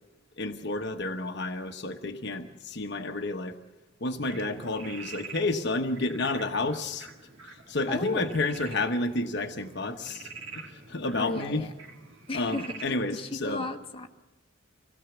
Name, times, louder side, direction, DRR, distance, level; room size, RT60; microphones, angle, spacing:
voice 1, 0.4-3.6 4.0-7.1 7.4-11.7 12.3-13.7, left 2 dB, 55° left, 5 dB, 1.1 m, -31 dB
Frog, 4.2-12.9, right 4 dB, 75° right, 3.4 m, -46 dB
voice 2, 7.9-8.3 11.2-11.7 12.3-14.1, left 2 dB, 25° left, 3 dB, 1.5 m, -34 dB
25.5 x 17.0 x 7.1 m, 1.1 s
head